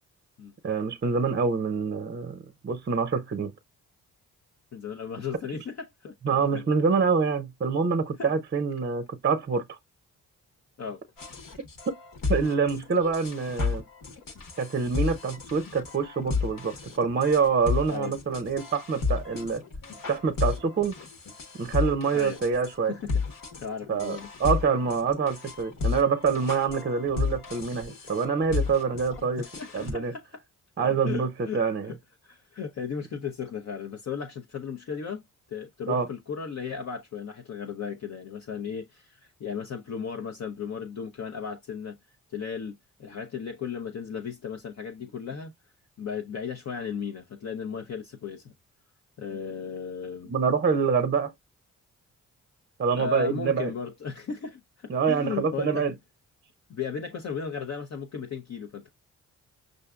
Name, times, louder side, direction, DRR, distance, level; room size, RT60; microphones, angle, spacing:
voice 1, 0.6-3.5 6.2-9.8 11.9-12.0 12.3-13.8 14.6-19.6 20.1-20.9 21.6-22.9 23.9-29.4 29.7-30.1 30.8-31.3 31.5-31.9 35.9-36.1 50.3-51.3 52.8-53.7 54.9-55.9, right 5 dB, 30° right, 0.6 m, -26 dB
voice 2, 4.7-6.6 8.2-8.3 10.8-11.0 17.9-18.1 22.1-22.4 22.8-23.2 23.6-24.3 29.3-30.4 30.8-32.0 32.2-35.2 35.5-42.0 42.3-45.5 46.0-48.5 49.2-50.4 53.0-56.0 56.7-58.9, left 6 dB, 45° left, 0.7 m, -36 dB
sound 1, 11.2-29.9, left 5 dB, 60° left, 1.2 m, -33 dB
5.5 x 2.5 x 2.4 m
supercardioid pair, 45°, 37 cm